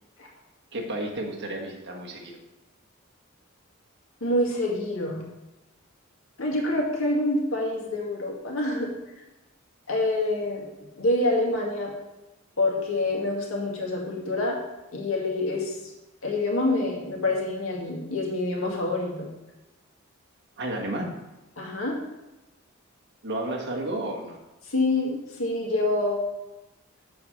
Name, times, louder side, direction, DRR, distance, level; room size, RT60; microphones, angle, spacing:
voice 1, 0.7-2.3 20.6-21.1 23.2-24.4, right 1 dB, 55° right, 0 dB, 1.5 m, -32 dB
voice 2, 4.2-5.2 6.4-8.9 9.9-10.7 11.0-11.9 12.6-14.6 14.9-15.8 16.2-19.3 21.6-22.0 24.6-26.2, left 2 dB, 80° left, -2 dB, 2.1 m, -26 dB
7.0 x 4.8 x 6.7 m, 1.0 s
head